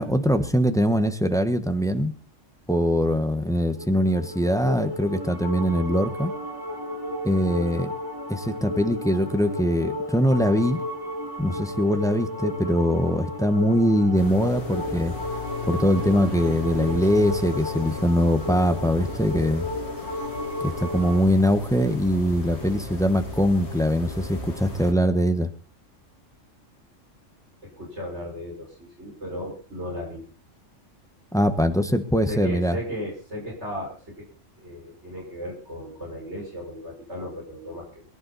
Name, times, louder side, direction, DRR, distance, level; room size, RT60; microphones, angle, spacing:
voice 1, 0.0-2.1 2.7-6.3 7.2-7.9 8.3-10.8 11.4-15.1 15.7-19.7 20.6-25.5 31.3-32.8, equal, 5° left, 9 dB, 1.2 m, -22 dB
sound 1, 3.7-21.3, left 1 dB, 15° right, 2.8 m, -33 dB
sound 2, 14.1-24.9, left 4 dB, 60° left, 3.3 m, -36 dB
voice 2, 27.6-30.2 32.3-34.3 34.6-38.0, equal, 60° right, -1 dB, 6.2 m, -36 dB
22.5 x 11.5 x 4.2 m, 0.35 s
omnidirectional pair, 1.3 m